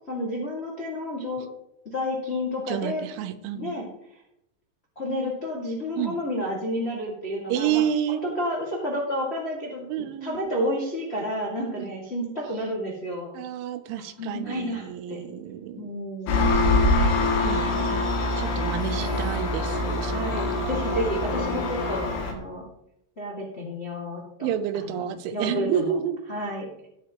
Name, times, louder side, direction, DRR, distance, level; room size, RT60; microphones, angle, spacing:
voice 1, 0.1-1.4 1.9-3.0 3.5-3.9 4.9-13.3 14.2-15.2 15.8-16.5 18.9-19.3 20.1-22.6 23.2-24.5 24.8-26.0 26.3-26.9, left 1 dB, 50° left, -3 dB, 0.7 m, -31 dB
voice 2, 2.7-3.7 6.0-6.2 7.5-8.2 9.9-10.5 11.7-11.9 13.3-15.9 17.4-18.0 18.4-20.7 24.4-26.2, right 10 dB, 85° right, 11 dB, 3.2 m, -30 dB
Engine, 16.3-22.3, left 2 dB, 90° left, 4.7 m, -24 dB
18.5 x 7.8 x 3.1 m, 0.81 s
omnidirectional pair, 5.4 m